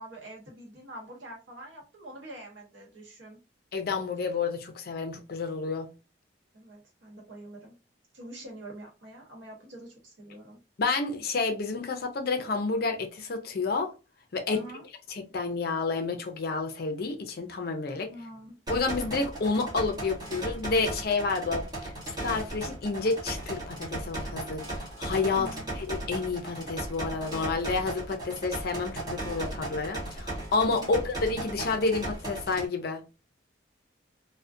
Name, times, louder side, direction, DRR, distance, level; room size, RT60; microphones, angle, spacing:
voice 1, 0.0-3.4 6.5-7.8 8.1-10.6 14.5-14.8 18.1-18.6 25.3-25.8 30.8-31.0, right 1 dB, 70° right, 1.0 m, -45 dB
voice 2, 3.7-5.9 10.8-13.9 14.3-14.6 15.1-18.1 18.7-21.9 22.2-25.5 25.9-33.0, left 4 dB, 50° left, 0.4 m, -30 dB
sound 1, 18.7-32.7, right 1 dB, 20° right, 0.9 m, -36 dB
2.3 x 2.1 x 2.5 m
head